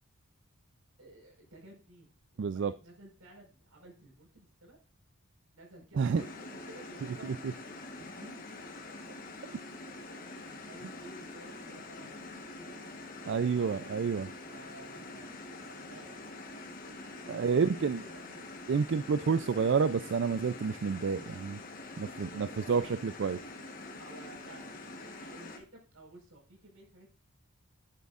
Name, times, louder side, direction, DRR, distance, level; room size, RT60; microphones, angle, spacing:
voice 1, 1.0-4.8 5.5-7.5 8.0-8.4 8.8-9.0 10.1-13.8 14.4-15.3 15.6-18.5 22.0-23.0 24.0-27.1, right 2 dB, 80° right, 4.7 m, -54 dB
voice 2, 2.4-2.7 6.0-6.2 7.2-7.5 13.3-14.3 17.3-18.0 18.7-21.6 22.0-23.4, right 5 dB, 55° right, 0.3 m, -29 dB
sound 1, 6.2-25.6, left 2 dB, 40° left, 1.2 m, -45 dB
10.5 x 8.1 x 2.4 m
head